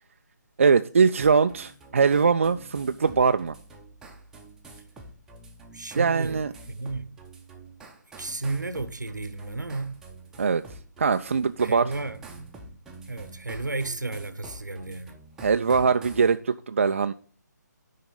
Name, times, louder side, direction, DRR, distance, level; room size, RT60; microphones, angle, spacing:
voice 1, 0.6-3.5 5.9-6.5 10.4-10.6 11.0-11.9 15.4-17.1, right 5 dB, 45° right, 0.3 m, -22 dB
sound 1, 1.2-16.3, right 2 dB, 5° right, 0.7 m, -47 dB
voice 2, 5.7-6.4 6.7-7.2 8.2-10.0 11.6-12.5 13.1-15.2, right 3 dB, 75° right, 0.9 m, -33 dB
10.5 x 3.8 x 5.2 m
figure-of-eight pair, 145°, 10 cm